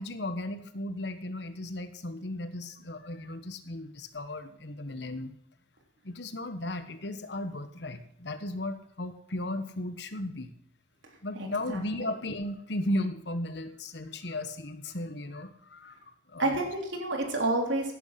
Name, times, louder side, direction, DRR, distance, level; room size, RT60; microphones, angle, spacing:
voice 1, 0.0-5.3 6.0-10.5 11.2-16.5, left 1 dB, 60° left, 10 dB, 1.3 m, -35 dB
voice 2, 11.4-11.8 16.4-17.9, right 2 dB, 80° right, 1 dB, 3.6 m, -29 dB
15.5 x 10.5 x 5.9 m, 0.76 s
head